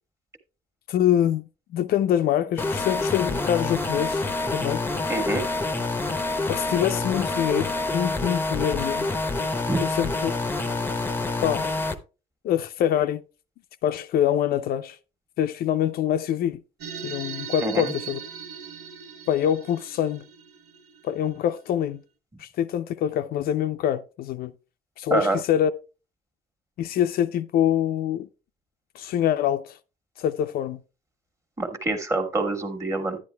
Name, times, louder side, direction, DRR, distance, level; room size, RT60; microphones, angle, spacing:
voice 1, 0.9-4.2 4.5-4.8 6.5-9.1 9.8-10.3 11.4-11.7 12.4-13.2 13.8-15.0 15.4-16.6 17.0-18.2 19.3-20.3 21.0-22.0 22.4-24.5 25.0-25.7 26.8-28.3 28.9-29.8 30.2-30.8, left 10 dB, 65° left, 0.5 m, -25 dB
sound 1, 2.6-11.9, left 2 dB, 10° left, 0.7 m, -27 dB
voice 2, 5.1-5.5 9.7-9.8 17.6-17.9 25.1-25.4 31.6-33.2, right 2 dB, 20° right, 1.4 m, -26 dB
sound 2, 16.8-21.7, right 7 dB, 85° right, 1.1 m, -39 dB
10.0 x 9.7 x 2.2 m
cardioid pair, 110°, 17 cm